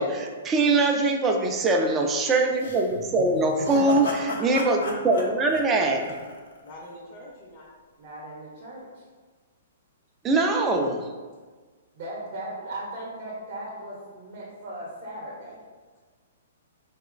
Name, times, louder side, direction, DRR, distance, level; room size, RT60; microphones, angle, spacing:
voice 1, 0.0-6.0 10.2-11.0, right 2 dB, 20° right, 2 dB, 0.3 m, -23 dB
sound 1, 2.6-6.7, left 3 dB, 80° left, 0.5 m, -34 dB
voice 2, 3.4-4.2 8.0-9.0 11.9-15.6, right 1 dB, 50° right, -5 dB, 0.7 m, -37 dB
voice 3, 5.7-6.1 6.6-7.7 10.5-10.9, left 1 dB, 35° left, -4 dB, 0.5 m, -45 dB
3.6 x 2.0 x 2.4 m, 1.4 s
hypercardioid pair, 145°, 0 cm